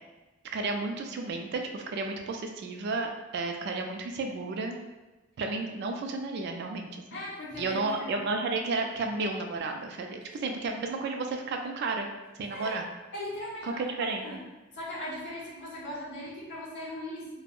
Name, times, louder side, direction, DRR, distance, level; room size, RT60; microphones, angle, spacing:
voice 1, 0.5-4.8 5.4-7.2 7.6-12.1 12.4-12.8 13.6-14.4, right 3 dB, 55° right, 4 dB, 0.3 m, -32 dB
voice 2, 7.1-8.2 12.5-12.8 13.1-14.4 14.7-17.3, left 1 dB, 55° left, -7 dB, 1.0 m, -39 dB
3.5 x 2.0 x 2.4 m, 1.1 s
head